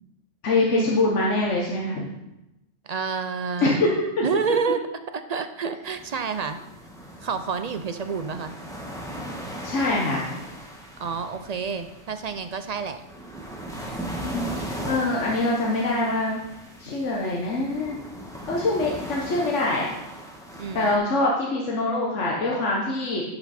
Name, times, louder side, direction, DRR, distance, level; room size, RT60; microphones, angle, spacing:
voice 1, 0.4-2.0 3.6-3.9 4.2-4.3 9.6-10.3 14.2-16.4 16.8-18.0 18.5-19.9 20.7-23.2, left 2 dB, 80° left, -2 dB, 1.4 m, -24 dB
voice 2, 2.8-3.8 4.2-4.8 5.3-6.6 7.2-8.5 11.0-13.0 13.9-14.1 20.6-21.0, right 6 dB, 55° right, 9 dB, 0.4 m, -29 dB
sound 1, 5.8-21.0, right 1 dB, 5° left, 1.4 m, -38 dB
10.5 x 6.0 x 4.2 m, 0.94 s
omnidirectional pair, 1.2 m